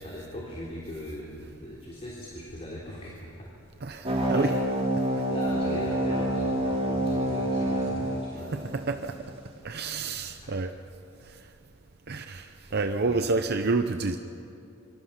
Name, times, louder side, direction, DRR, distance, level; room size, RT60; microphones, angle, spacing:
voice 1, 0.0-3.5 4.3-4.6 5.0-8.7 10.4-10.6 12.7-13.3, left 1 dB, 30° left, -4 dB, 3.6 m, -39 dB
voice 2, 3.8-4.5 8.5-9.2 9.6-10.7 11.2-11.4 12.1-14.2, right 3 dB, 50° right, 7 dB, 0.7 m, -29 dB
sound 1, 4.0-9.0, right 1 dB, 30° right, 5.7 m, -28 dB
27.5 x 24.5 x 5.8 m, 2.7 s
head